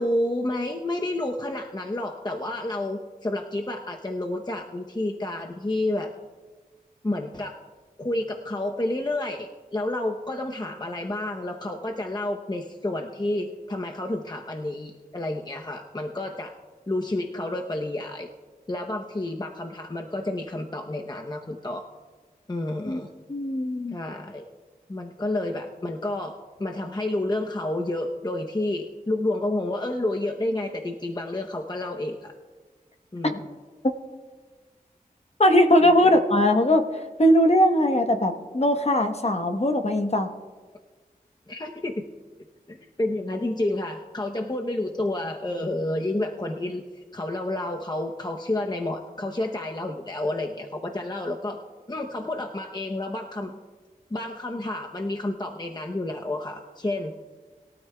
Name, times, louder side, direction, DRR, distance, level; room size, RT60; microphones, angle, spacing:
voice 1, 0.0-6.1 7.0-7.6 8.0-16.5 16.9-18.3 18.7-21.8 22.5-23.1 23.9-24.4 24.9-32.3 33.1-33.4 35.8-36.2 41.5-42.1 42.7-51.6 51.9-53.6 54.1-57.1, left 1 dB, 30° left, 2 dB, 0.8 m, -30 dB
voice 2, 23.3-24.0 35.4-40.3, left 1 dB, 45° left, 5 dB, 1.1 m, -20 dB
21.5 x 13.0 x 2.3 m, 1.4 s
wide cardioid pair, 55°, 15 cm